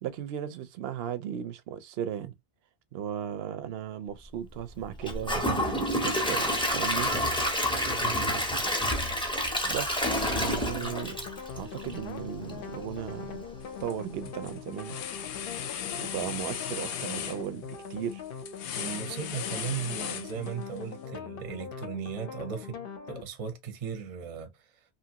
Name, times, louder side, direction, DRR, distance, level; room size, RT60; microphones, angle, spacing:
voice 1, 0.0-2.3 2.9-7.1 9.6-11.2 11.6-13.4 13.8-15.0 15.9-18.2, right 10 dB, 70° right, 0.8 m, -36 dB
Gurgling / Toilet flush / Trickle dribble, 5.0-12.1 12.5-12.6 13.1-13.2, equal, 5° left, 0.6 m, -28 dB
sound 1, 10.2-23.2, left 6 dB, 60° left, 0.7 m, -41 dB
sound 2, 13.6-13.9 14.2-20.8, left 9 dB, 85° left, 0.9 m, -37 dB
voice 2, 18.8-22.8 23.1-24.5, right 7 dB, 40° right, 0.6 m, -37 dB
2.8 x 2.5 x 2.7 m
omnidirectional pair, 1.1 m